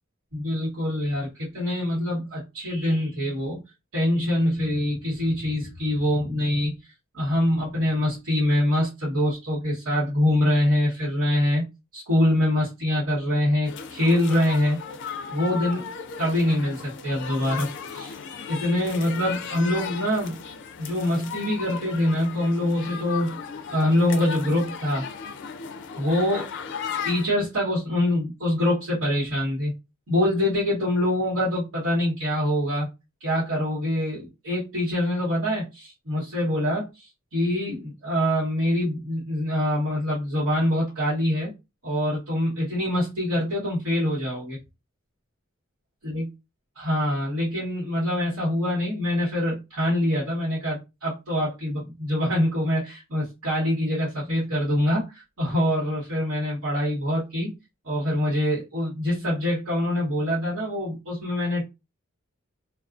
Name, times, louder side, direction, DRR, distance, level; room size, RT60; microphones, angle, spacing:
voice 1, 0.3-3.6 3.9-11.6 11.9-14.8 15.3-18.1 18.5-20.4 20.8-23.4 23.7-25.1 26.0-26.5 27.0-29.7 30.1-32.9 33.2-41.5 41.8-44.6 46.0-46.3 46.8-57.5 57.8-61.6, left 1 dB, 75° right, -7 dB, 1.2 m, -24 dB
sound 1, 13.6-27.3, left 6 dB, 55° left, 0.3 m, -36 dB
2.4 x 2.2 x 2.4 m, 0.25 s
head